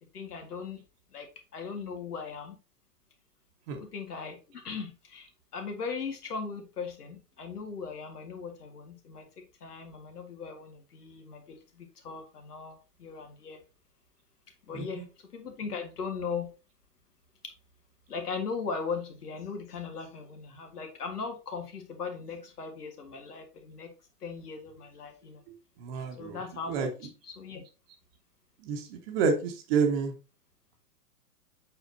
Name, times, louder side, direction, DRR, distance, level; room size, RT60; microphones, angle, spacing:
voice 1, 0.1-0.8 1.1-2.6 3.7-13.6 14.7-16.5 17.4-17.5 18.1-23.9 24.2-25.4 26.2-27.6, left 5 dB, 70° left, 5 dB, 2.0 m, -39 dB
voice 2, 14.7-15.0 25.8-26.4 26.7-26.9 28.6-30.1, right 5 dB, 35° right, 6 dB, 1.3 m, -29 dB
7.6 x 4.8 x 2.8 m, 0.31 s
figure-of-eight pair, 115°, 48 cm